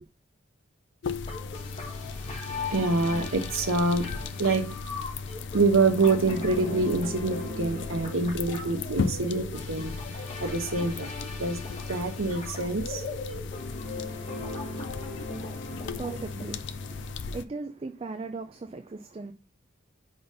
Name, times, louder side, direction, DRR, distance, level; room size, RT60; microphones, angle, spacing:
sound 1, 1.0-17.5, left 4 dB, 60° left, 0.4 m, -36 dB
sound 2, 1.3-17.3, left 2 dB, 30° left, 1.5 m, -39 dB
voice 1, 2.7-4.7 5.5-11.6 11.9-13.0 15.2-15.3, right 3 dB, 85° right, 1.1 m, -26 dB
voice 2, 15.9-19.3, right 3 dB, 30° right, 0.4 m, -38 dB
5.1 x 4.0 x 5.4 m
head